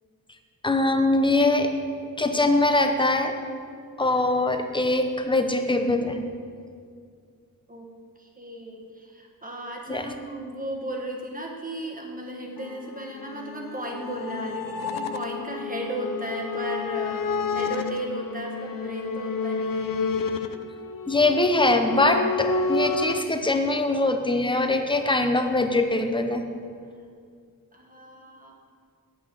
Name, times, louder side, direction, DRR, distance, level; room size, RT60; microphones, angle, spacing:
voice 1, 0.6-1.7 2.2-3.3 4.0-6.2 9.9-10.1 21.1-26.4, left 2 dB, 15° left, 6 dB, 0.6 m, -22 dB
voice 2, 8.2-20.0 27.7-28.5, right 1 dB, 25° right, 0 dB, 1.3 m, -35 dB
sound 1, 12.6-23.2, left 4 dB, 65° left, 0.5 m, -30 dB
8.3 x 8.1 x 4.6 m, 2.2 s
wide cardioid pair, 115°, 36 cm